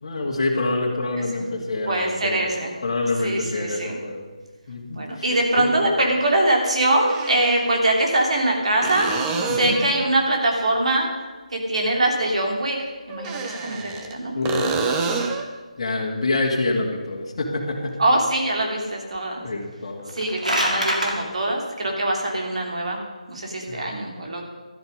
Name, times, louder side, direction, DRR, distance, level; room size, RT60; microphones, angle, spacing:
voice 1, 0.0-2.4 2.8-4.3 4.7-5.7 9.5-9.8 14.3-15.0 15.8-18.0 19.4-20.1 23.7-23.8, left 2 dB, 45° left, -2 dB, 2.5 m, -26 dB
voice 2, 1.9-2.7 3.2-4.0 4.9-9.1 9.5-11.1 11.5-14.3 18.0-19.4 20.1-23.0 23.3-24.4, right 1 dB, 55° right, 0 dB, 3.1 m, -23 dB
sound 1, 3.5-3.6 5.6-5.7 7.0-7.8 8.8-10.0 13.1-14.1 14.5-15.5 19.2-19.3, right 4 dB, 15° right, 0.9 m, -27 dB
sound 2, 20.0-21.1, equal, 90° right, 2.9 m, -24 dB
12.5 x 12.0 x 5.3 m, 1.3 s
figure-of-eight pair, 155°, 4 cm